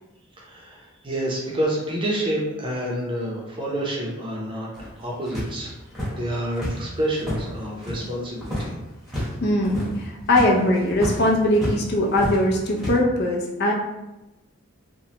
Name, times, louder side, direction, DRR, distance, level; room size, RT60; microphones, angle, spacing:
voice 1, 0.4-5.7 6.2-8.7, right 1 dB, 25° right, -3 dB, 0.6 m, -28 dB
sound 1, 4.7-8.1 8.4-8.7 9.0-9.3 9.6-11.8 12.1-13.0, equal, ahead, 1.0 m, -31 dB
voice 2, 9.4-13.7, left 1 dB, 50° left, -1 dB, 0.5 m, -21 dB
3.0 x 2.2 x 2.8 m, 0.99 s
head